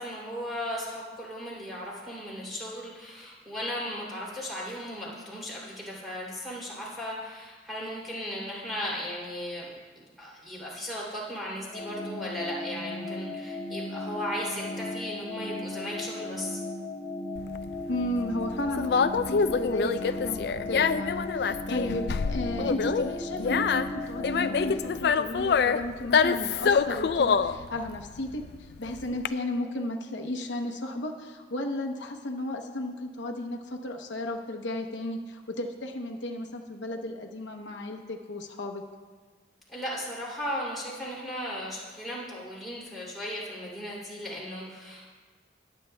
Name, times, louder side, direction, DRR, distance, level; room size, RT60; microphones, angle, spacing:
voice 1, 0.0-9.7 10.2-16.6 39.7-45.1, equal, ahead, -6 dB, 2.8 m, -36 dB
sound 1, 11.7-24.8, left 2 dB, 35° left, 2.3 m, -36 dB
Conversation, 17.4-29.3, left 5 dB, 60° left, 0.3 m, -26 dB
voice 2, 17.9-38.8, left 1 dB, 85° left, 3 dB, 0.9 m, -34 dB
21.5 x 8.2 x 2.2 m, 1.4 s
head